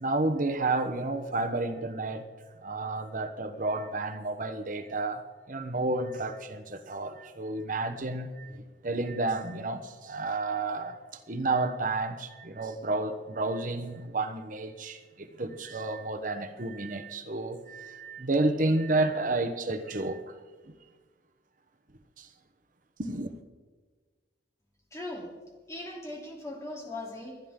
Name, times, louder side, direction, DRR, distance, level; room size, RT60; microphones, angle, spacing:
voice 1, 0.0-2.3 2.6-5.2 5.5-11.0 11.3-20.2 22.2-22.3 23.0-23.3, right 2 dB, 50° right, 8 dB, 1.0 m, -31 dB
voice 2, 24.9-25.2 25.7-27.3, left 2 dB, 15° left, -2 dB, 3.2 m, -39 dB
29.0 x 10.5 x 3.8 m, 1.4 s
head